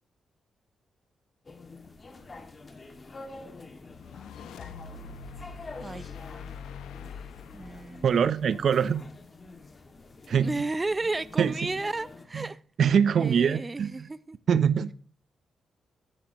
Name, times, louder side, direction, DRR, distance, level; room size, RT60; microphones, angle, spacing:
sound 1, 1.4-12.3, left 3 dB, 40° left, 2.1 m, -47 dB
sound 2, 3.9-9.2, left 6 dB, 85° left, 0.8 m, -44 dB
voice 1, 7.5-8.1 10.4-12.6 13.1-14.4, right 2 dB, 30° right, 17 dB, 0.6 m, -33 dB
voice 2, 8.0-9.0 10.3-10.5 11.4-11.7 12.3-12.4 12.8-13.9 14.5-14.9, right 7 dB, 65° right, 16 dB, 0.7 m, -23 dB
12.5 x 11.5 x 3.0 m, 0.41 s
supercardioid pair, 55°, 0 cm